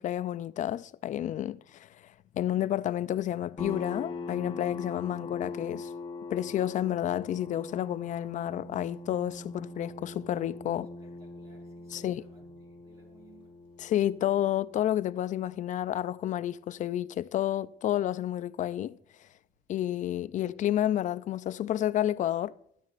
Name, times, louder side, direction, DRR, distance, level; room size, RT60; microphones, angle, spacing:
voice 1, 0.0-1.9 2.3-5.9 6.3-10.9 11.9-12.2 13.8-19.0 19.7-22.6, left 12 dB, 50° left, 0.4 m, -30 dB
sound 1, 3.6-16.8, left 3 dB, 30° left, 1.4 m, -42 dB
voice 2, 10.6-13.9, right 2 dB, 35° right, 4.5 m, -60 dB
13.5 x 9.4 x 2.5 m
cardioid pair, 110°, 17 cm